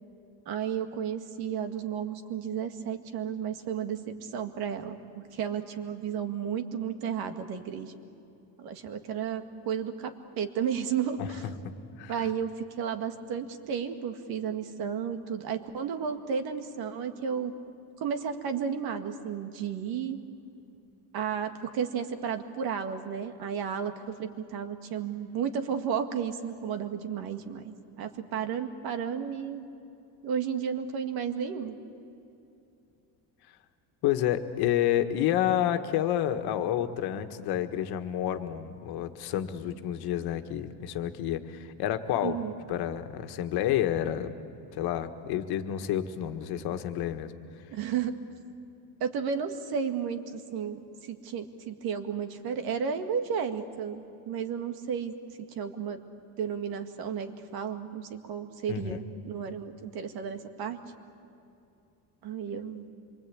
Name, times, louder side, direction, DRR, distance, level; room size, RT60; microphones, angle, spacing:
voice 1, 0.5-7.9 8.6-11.5 12.1-17.5 18.0-20.2 21.1-29.7 30.2-31.8 42.2-42.5 47.7-48.1 49.0-55.1 55.5-56.0 56.4-60.8 62.2-62.9, right 7 dB, 60° right, 7 dB, 2.0 m, -33 dB
voice 2, 34.0-42.4 42.7-44.3 44.7-47.3 58.7-59.0, left 11 dB, 65° left, 7 dB, 1.7 m, -29 dB
26.5 x 23.5 x 8.7 m, 2.8 s
cardioid pair, 155°, 41 cm